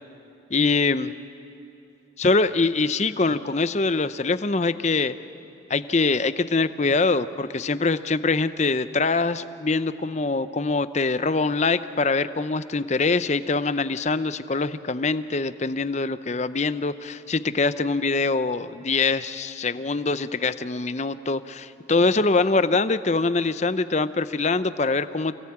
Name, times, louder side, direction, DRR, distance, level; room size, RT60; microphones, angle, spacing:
voice 1, 0.5-1.1 2.2-5.1 5.7-25.4, left 3 dB, 35° left, 13 dB, 0.6 m, -24 dB
28.0 x 18.5 x 8.7 m, 2.8 s
head